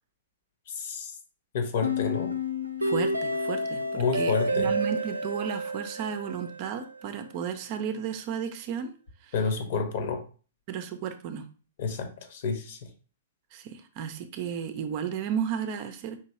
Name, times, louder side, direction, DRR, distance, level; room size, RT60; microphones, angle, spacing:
voice 1, 0.7-1.2 1.5-2.3 3.9-4.7 9.3-10.2 11.8-12.9, left 5 dB, 50° left, 5 dB, 1.1 m, -29 dB
sound 1, 1.8-6.9, equal, 90° right, 0.5 m, -29 dB
voice 2, 2.8-8.9 9.2-9.3 10.7-11.5 13.5-16.2, right 8 dB, 40° right, 8 dB, 0.5 m, -33 dB
4.9 x 3.0 x 2.8 m, 0.38 s
figure-of-eight pair, 110°, 0 cm